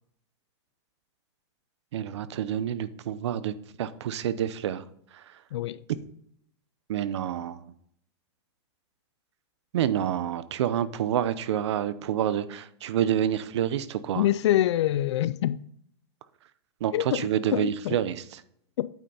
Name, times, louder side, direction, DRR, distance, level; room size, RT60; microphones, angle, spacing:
voice 1, 1.9-4.8 5.1-5.2 6.9-7.6 9.7-14.2 16.8-18.4, right 10 dB, 80° right, 0.7 m, -28 dB
voice 2, 14.2-15.6 16.9-18.0 18.8-18.9, left 13 dB, 85° left, 0.4 m, -25 dB
9.0 x 5.5 x 4.1 m
supercardioid pair, 165°, 14 cm